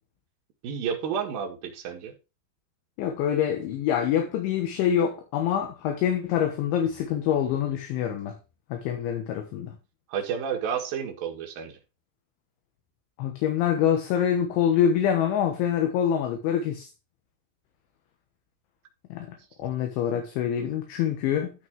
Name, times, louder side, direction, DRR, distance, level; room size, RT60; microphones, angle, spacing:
voice 1, 0.6-2.1 10.1-11.8, right 7 dB, 60° right, 2.8 m, -31 dB
voice 2, 3.0-8.4 8.7-9.7 13.2-16.9 19.1-21.5, left 9 dB, 70° left, 3.5 m, -25 dB
12.5 x 6.0 x 3.5 m
omnidirectional pair, 6.0 m